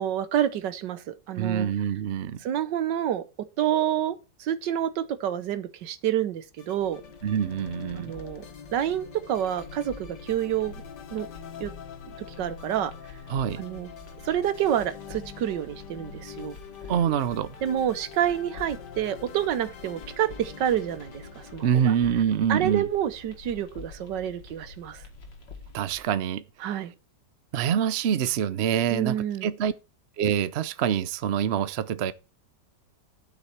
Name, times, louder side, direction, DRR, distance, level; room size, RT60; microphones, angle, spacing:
voice 1, 0.0-1.7 2.4-3.2 3.6-7.0 7.9-8.4 8.7-10.8 11.1-11.3 11.6-11.7 12.2-12.9 13.6-13.9 14.2-16.6 17.6-21.9 22.5-25.0 26.6-26.9 28.9-29.5, right 10 dB, 80° right, 1.6 m, -28 dB
voice 2, 1.4-2.4 7.2-8.1 13.3-13.6 16.9-17.5 21.6-22.9 25.7-26.4 27.5-29.7 30.2-32.1, right 8 dB, 60° right, 0.7 m, -25 dB
sound 1, 6.6-24.0, left 8 dB, 70° left, 1.8 m, -45 dB
sound 2, 6.8-26.0, left 3 dB, 90° left, 2.7 m, -47 dB
11.5 x 6.4 x 4.4 m
omnidirectional pair, 1.9 m